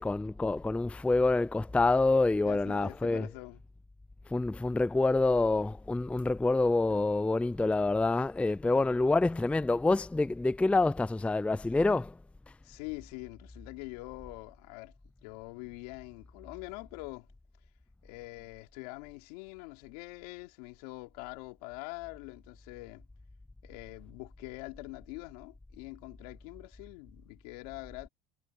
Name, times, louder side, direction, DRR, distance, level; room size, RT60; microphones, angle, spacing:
voice 1, 0.0-3.3 4.3-12.2, left 2 dB, 5° left, 0.4 m, -27 dB
voice 2, 2.4-3.6 8.6-9.0 12.6-14.9 15.2-17.3 18.0-23.0 23.6-28.1, left 25 dB, 80° left, 3.4 m, -44 dB
supercardioid pair, 90°, 20 cm